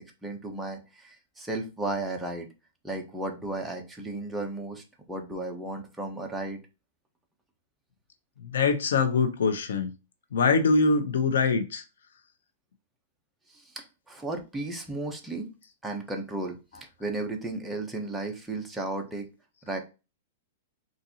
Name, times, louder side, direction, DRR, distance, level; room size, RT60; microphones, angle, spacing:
voice 1, 0.0-2.5 2.8-6.6 13.5-15.5 15.8-19.3 19.6-19.8, right 2 dB, 5° right, 0.7 m, -34 dB
voice 2, 8.4-9.9 10.3-11.8, left 4 dB, 85° left, 0.7 m, -23 dB
3.9 x 2.5 x 2.8 m
hypercardioid pair, 145°, 0 cm